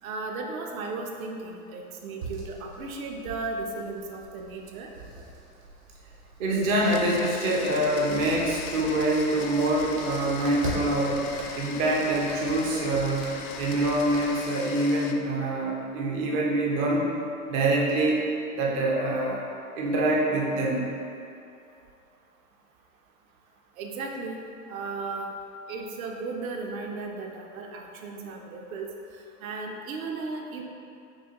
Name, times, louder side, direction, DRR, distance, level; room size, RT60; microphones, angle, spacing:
voice 1, 0.0-4.9 23.8-24.4 24.7-25.3 25.7-28.9 29.4-30.6, right 3 dB, 60° right, 1 dB, 0.6 m, -35 dB
sound 1, 2.2-14.3, right 2 dB, 85° right, 1.2 m, -42 dB
voice 2, 6.4-11.3 11.6-13.3 13.6-17.1 17.5-18.2 18.5-19.4 19.8-20.9, right 1 dB, 20° right, -3 dB, 0.3 m, -25 dB
Domestic sounds home sounds, 6.7-15.1, left 6 dB, 70° left, 0.5 m, -40 dB
6.1 x 2.3 x 2.8 m, 2.6 s
hypercardioid pair, 105°, 46 cm